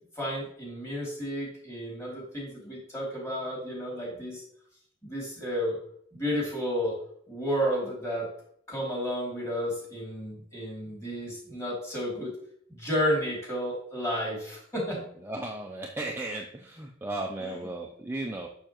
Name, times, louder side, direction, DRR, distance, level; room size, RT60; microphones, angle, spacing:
voice 1, 0.1-4.4 5.0-5.8 6.1-7.0 7.3-8.3 8.7-12.3 12.7-15.0 17.4-17.7, equal, 15° left, -4 dB, 2.7 m, -32 dB
voice 2, 15.2-18.5, right 2 dB, 10° right, 1 dB, 0.5 m, -35 dB
6.8 x 6.2 x 3.0 m, 0.67 s
head